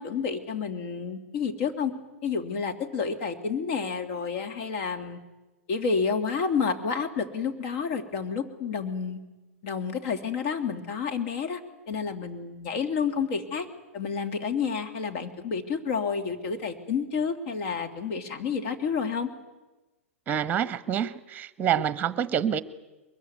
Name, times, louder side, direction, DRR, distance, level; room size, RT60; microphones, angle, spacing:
voice 1, 0.0-1.9 2.2-5.2 5.7-9.2 9.6-11.6 11.9-13.7 13.9-19.3, left 5 dB, 45° left, 6 dB, 2.7 m, -30 dB
voice 2, 20.3-22.6, right 9 dB, 25° right, 15 dB, 1.2 m, -27 dB
22.5 x 22.0 x 9.5 m, 1.1 s
figure-of-eight pair, 105°, 8 cm